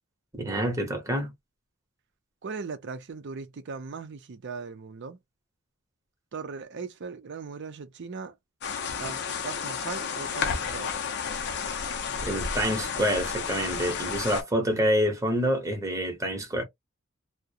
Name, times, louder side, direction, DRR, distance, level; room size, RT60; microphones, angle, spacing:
voice 1, 0.3-1.3 12.2-16.6, equal, 15° right, 0.8 m, -27 dB
voice 2, 2.4-5.2 6.3-8.4 9.0-10.9, right 5 dB, 55° right, 0.5 m, -38 dB
sound 1, 8.6-14.4, left 6 dB, 55° left, 0.5 m, -31 dB
2.3 x 2.1 x 2.7 m
head